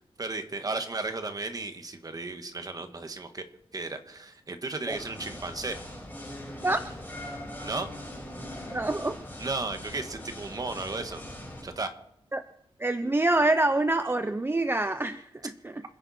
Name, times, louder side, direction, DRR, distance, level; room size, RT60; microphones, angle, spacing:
voice 1, 0.2-3.4 3.7-5.8 7.6-7.9 9.4-11.2 11.6-11.9, right 3 dB, 40° right, 7 dB, 1.5 m, -34 dB
sound 1, 4.9-11.6, left 1 dB, 15° left, 6.7 m, -41 dB
voice 2, 8.7-9.2 12.3-12.4 12.8-15.8, right 2 dB, 25° right, 10 dB, 0.6 m, -26 dB
26.5 x 10.5 x 4.3 m, 0.75 s
wide cardioid pair, 135°, 10 cm